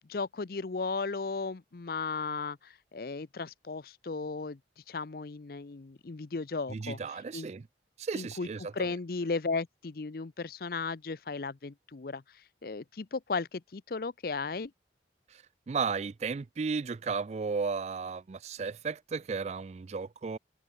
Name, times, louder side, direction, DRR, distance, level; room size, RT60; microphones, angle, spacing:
voice 1, 0.1-4.6 4.9-7.0 7.3-7.5 8.1-8.5 8.7-12.2 12.6-14.7, left 4 dB, 55° left, 0.6 m, -35 dB
voice 2, 6.7-7.7 8.0-8.9 15.3-20.4, right 5 dB, 40° right, 0.4 m, -34 dB
open air
head